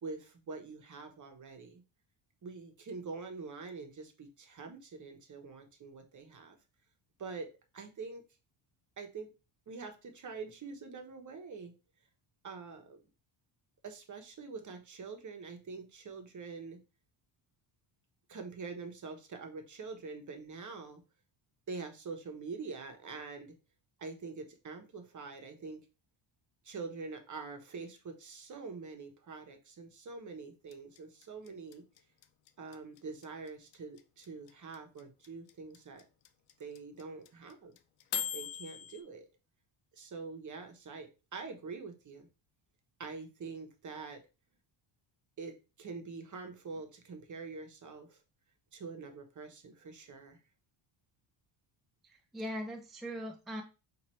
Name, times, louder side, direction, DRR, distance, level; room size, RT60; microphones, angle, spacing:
voice 1, 0.0-1.8 2.4-6.6 7.2-7.5 7.7-8.2 9.0-9.3 9.7-11.7 12.4-13.0 13.8-16.8 18.3-21.0 21.7-23.5 24.0-25.8 26.6-31.8 32.6-36.1 36.6-37.8 38.3-39.3 40.0-42.3 43.0-44.2 45.4-48.2 48.7-50.4, right 4 dB, 35° right, 5 dB, 1.0 m, -45 dB
sound 1, 30.7-39.0, left 11 dB, 80° left, 0.7 m, -39 dB
voice 2, 52.0-53.6, equal, ahead, 2 dB, 0.6 m, -40 dB
5.6 x 2.7 x 3.1 m, 0.30 s
cardioid pair, 100°, 49 cm